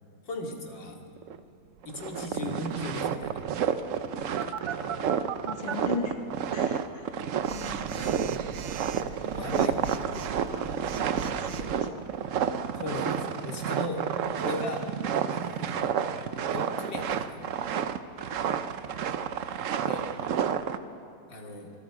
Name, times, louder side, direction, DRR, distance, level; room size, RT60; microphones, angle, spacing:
voice 1, 0.3-1.0 1.8-3.4 7.9-8.2 9.3-9.7 12.8-14.0 14.4-14.9 15.3-15.9 16.5-17.4 19.8-20.0 21.3-21.7, left 1 dB, 85° left, 0 dB, 3.2 m, -37 dB
sound 1, 1.2-1.4 1.8-20.8, right 8 dB, 60° right, 0.9 m, -30 dB
voice 2, 4.2-4.7 5.1-6.2 6.5-7.1 7.5-8.3 8.9-12.2 18.2-18.4 18.9-19.2, left 4 dB, 25° left, 4 dB, 1.4 m, -41 dB
Telephone, 4.4-5.7 7.4-11.8, right 9 dB, 80° right, 1.4 m, -37 dB
26.0 x 24.0 x 5.0 m, 2.6 s
omnidirectional pair, 1.9 m